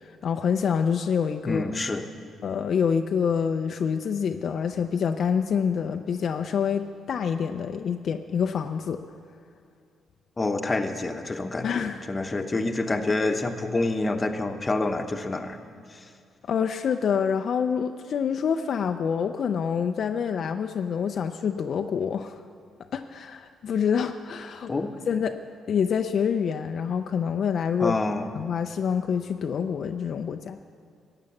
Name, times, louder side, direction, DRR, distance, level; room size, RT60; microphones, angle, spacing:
voice 1, 0.0-1.6 2.4-9.0 11.6-12.0 16.5-22.4 22.9-24.7 25.1-25.3 25.7-28.0 28.4-30.6, left 7 dB, 60° left, 6 dB, 0.4 m, -26 dB
voice 2, 1.4-2.0 10.4-15.6 15.9-16.1 24.7-24.9 27.8-28.3, left 2 dB, 25° left, 6 dB, 1.0 m, -27 dB
15.0 x 8.8 x 7.1 m, 2.2 s
cardioid pair, 90°, 0 cm